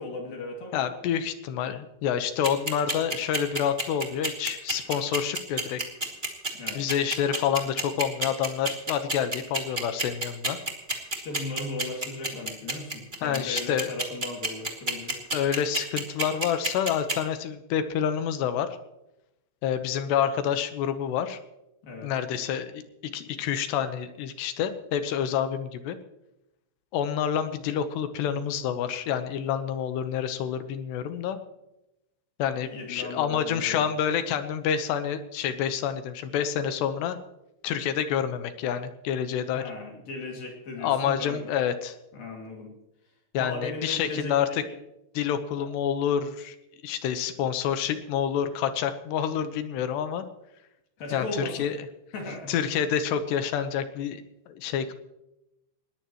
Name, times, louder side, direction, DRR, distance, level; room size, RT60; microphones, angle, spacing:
voice 1, 0.0-0.9 6.5-6.9 11.1-15.2 21.8-22.1 32.7-33.9 39.5-41.4 42.1-42.7 43.4-44.4 44.7-44.8 45.6-45.7 51.0-51.7 52.1-52.5, left 2 dB, 55° left, 1 dB, 3.8 m, -36 dB
voice 2, 0.7-5.8 6.7-10.6 13.2-13.9 15.3-18.8 19.6-21.4 22.0-22.8 23.1-26.0 26.9-31.4 32.4-37.2 37.6-39.6 40.8-42.0 43.3-44.6 45.1-46.6 46.8-50.3 51.1-51.8 52.5-54.9, left 8 dB, 75° left, 9 dB, 2.9 m, -28 dB
sound 1, 2.4-17.1, right 2 dB, 25° right, 1.1 m, -28 dB
20.5 x 18.0 x 3.0 m, 0.88 s
omnidirectional pair, 5.5 m